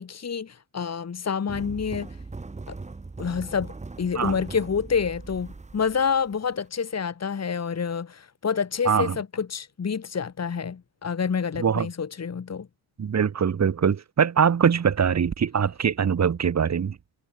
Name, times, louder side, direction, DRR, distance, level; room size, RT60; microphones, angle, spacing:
voice 1, 0.0-2.1 3.2-12.7, left 6 dB, 30° left, 2.5 m, -28 dB
sound 1, 1.5-6.7, right 3 dB, 15° right, 1.4 m, -40 dB
voice 2, 8.8-9.2 11.6-11.9 13.0-17.0, right 7 dB, 35° right, 1.4 m, -22 dB
cardioid pair, 125°, 48 cm